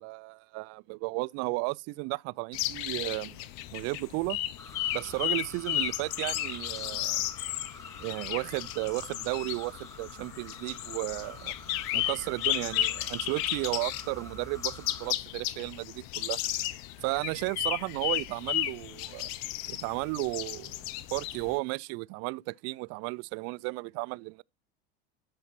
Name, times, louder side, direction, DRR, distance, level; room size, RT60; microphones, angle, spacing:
voice 1, 0.0-3.4 3.7-4.4 4.9-7.2 8.0-11.5 11.9-16.4 17.0-19.3 19.7-20.8 21.1-24.4, right 26 dB, 50° right, 0.5 m, -34 dB
sound 1, 2.5-21.6, left 14 dB, 60° left, 1.0 m, -34 dB
sound 2, 4.6-15.1, left 1 dB, 10° left, 1.9 m, -48 dB
13.0 x 5.8 x 4.2 m
hypercardioid pair, 90°, 32 cm